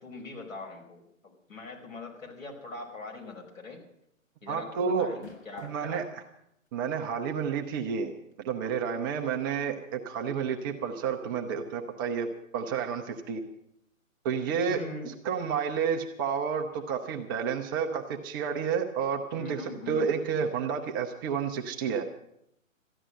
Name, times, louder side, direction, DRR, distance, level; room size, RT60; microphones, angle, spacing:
voice 1, 0.0-3.8 4.4-6.0 14.7-15.1 19.3-20.0, left 2 dB, 75° left, 0 dB, 5.2 m, -42 dB
sound 1, 3.3-3.5 3.8-3.9 5.0-5.9 6.7-6.8 8.3-8.4, left 5 dB, 55° left, 5.2 m, -49 dB
voice 2, 4.5-5.1 5.6-6.2 6.7-8.1 8.4-12.3 12.5-13.4 14.2-22.1, right 6 dB, 15° right, 3 dB, 0.6 m, -30 dB
14.0 x 10.0 x 7.6 m, 0.77 s
figure-of-eight pair, 135°, 40 cm